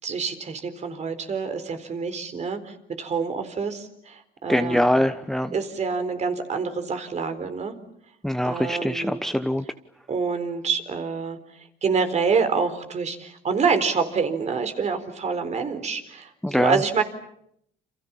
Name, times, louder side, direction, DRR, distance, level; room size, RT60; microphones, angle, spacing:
voice 1, 0.0-4.9 5.5-7.7 8.4-9.2 10.1-17.0, right 5 dB, 40° right, 9 dB, 4.2 m, -27 dB
voice 2, 4.5-5.5 8.2-9.6 16.4-16.8, left 1 dB, ahead, 10 dB, 1.0 m, -23 dB
29.5 x 28.0 x 7.2 m, 0.73 s
cardioid pair, 110°, 17 cm